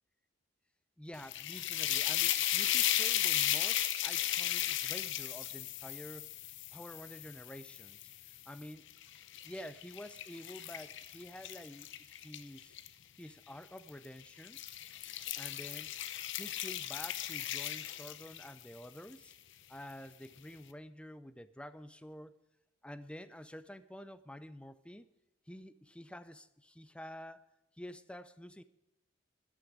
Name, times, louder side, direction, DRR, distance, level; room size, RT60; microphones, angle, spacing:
voice 1, 1.0-6.3 6.7-8.1 8.5-8.9 9.4-12.8 13.2-14.6 15.4-15.9 16.4-19.3 19.7-22.4 22.8-25.1 25.5-27.5 27.8-28.6, left 1 dB, 5° left, 13 dB, 0.5 m, -49 dB
sound 1, 1.1-8.4 8.9-12.9 13.8-14.1 14.4-18.6, left 12 dB, 65° left, 0.7 m, -35 dB
13.0 x 6.3 x 9.8 m, 0.88 s
head